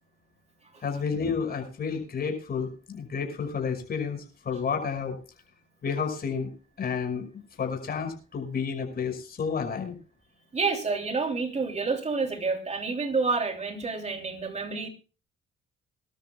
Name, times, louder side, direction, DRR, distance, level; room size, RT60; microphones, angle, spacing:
voice 1, 0.8-5.2 5.8-6.5 6.8-7.3 7.6-10.0, left 6 dB, 50° left, 4 dB, 5.7 m, -30 dB
voice 2, 10.5-14.9, right 4 dB, 35° right, 4 dB, 3.2 m, -29 dB
24.5 x 13.0 x 2.3 m, 0.35 s
cardioid pair, 90°, 20 cm